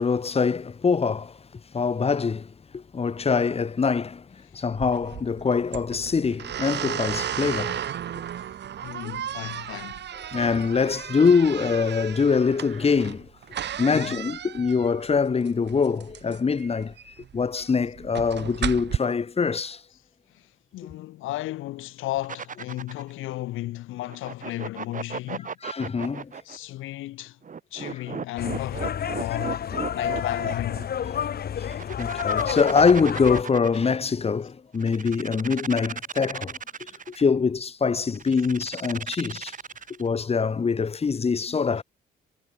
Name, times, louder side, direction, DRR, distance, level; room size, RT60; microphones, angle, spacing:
voice 1, 0.0-1.3 1.7-4.2 4.5-7.8 10.3-13.3 13.8-19.8 25.6-26.3 32.0-36.6 37.1-39.5 40.0-41.8, left 5 dB, 30° left, 1.3 m, -24 dB
sound 1, 4.7-19.0, right 10 dB, 60° right, 2.1 m, -34 dB
voice 2, 8.8-10.0 13.8-14.2 19.9-20.0 20.3-25.6 26.4-27.4 27.7-31.0 32.7-32.8, left 16 dB, 90° left, 1.4 m, -35 dB
sound 2, 22.2-23.1 24.1-26.6 27.4-30.9 31.6-34.0 34.7-37.2 38.1-40.1, right 6 dB, 40° right, 2.8 m, -36 dB
sound 3, 28.4-33.4, left 9 dB, 50° left, 1.2 m, -29 dB
cardioid pair, 90°, 20 cm